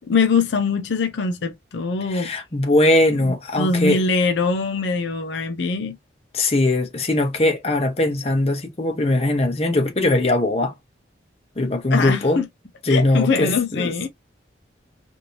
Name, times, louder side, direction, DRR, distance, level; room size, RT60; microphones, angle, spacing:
voice 1, 0.1-2.3 3.2-6.0 11.9-12.5 12.9-14.1, left 4 dB, 75° left, 0.5 m, -22 dB
voice 2, 2.1-4.0 6.3-10.7 11.6-12.4 12.8-14.1, left 2 dB, 35° left, 0.8 m, -20 dB
2.9 x 2.6 x 2.9 m
head